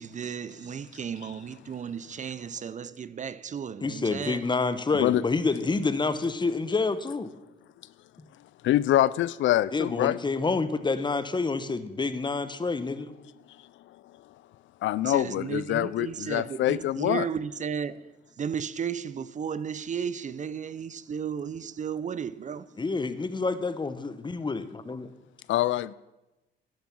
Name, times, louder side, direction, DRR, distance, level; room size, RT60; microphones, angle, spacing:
voice 1, 0.0-4.4 15.0-18.1 18.4-22.8, right 7 dB, 40° right, 0.5 m, -34 dB
voice 2, 3.8-7.3 9.7-13.1 22.8-25.1, left 3 dB, 25° left, 1.0 m, -28 dB
voice 3, 8.6-10.2 14.8-17.3 25.5-25.9, left 14 dB, 70° left, 0.4 m, -25 dB
11.5 x 10.5 x 6.1 m
cardioid pair, 90°, 20 cm